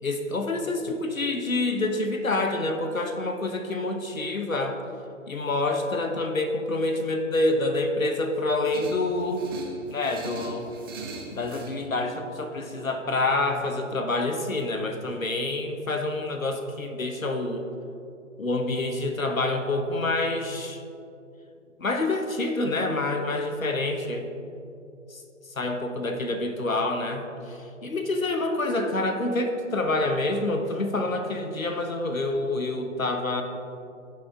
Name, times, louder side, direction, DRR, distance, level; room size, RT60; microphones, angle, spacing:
voice 1, 0.0-4.8 5.3-9.5 9.9-10.7 11.3-17.6 18.4-20.8 21.8-24.2 25.6-33.4, left 2 dB, 90° left, 5 dB, 1.2 m, -27 dB
sound 1, 8.7-11.8, right 3 dB, 20° right, 0.6 m, -40 dB
16.0 x 6.1 x 3.7 m, 2.7 s
figure-of-eight pair, 140°, 39 cm